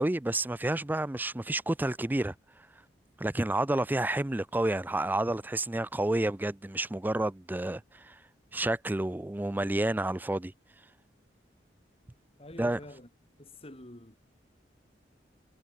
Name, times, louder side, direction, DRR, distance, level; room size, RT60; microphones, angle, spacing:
voice 1, 0.0-2.3 3.2-8.2 8.5-10.5 12.6-12.8, right 1 dB, 10° right, 0.4 m, -30 dB
voice 2, 12.4-13.1 13.4-14.2, left 1 dB, 35° left, 2.9 m, -47 dB
head